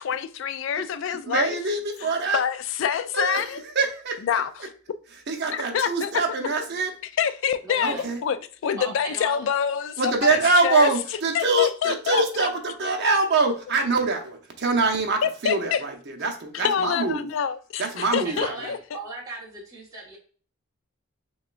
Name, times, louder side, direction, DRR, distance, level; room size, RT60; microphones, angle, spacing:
voice 1, 0.0-1.6 2.3-3.6 4.2-4.5 5.5-6.1 7.2-7.9 8.2-8.4 8.6-10.9 11.3-12.2 15.2-15.8 16.5-18.8, left 8 dB, 65° left, 0.3 m, -26 dB
voice 2, 1.1-2.4 3.1-4.4 5.3-6.9 7.8-8.2 10.0-17.3 17.8-18.7, right 3 dB, 55° right, 0.8 m, -24 dB
voice 3, 7.6-8.1 8.8-9.5 18.2-20.2, right 3 dB, 15° right, 1.4 m, -37 dB
6.2 x 2.3 x 2.5 m
head